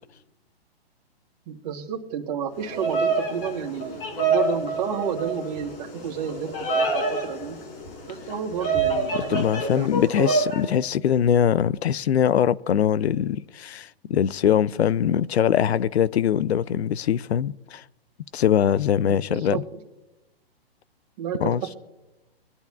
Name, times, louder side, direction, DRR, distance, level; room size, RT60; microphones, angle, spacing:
voice 1, 1.5-7.6 8.1-9.9 10.2-10.8 19.1-19.6 21.2-21.8, right 8 dB, 25° right, 1.9 m, -31 dB
Bird vocalization bird call bird song, 2.6-10.6, right 3 dB, 60° left, 4.8 m, -27 dB
voice 2, 9.1-17.8 18.3-19.6 21.4-21.6, left 9 dB, 85° left, 0.5 m, -22 dB
24.5 x 10.5 x 2.4 m
hypercardioid pair, 150°, 31 cm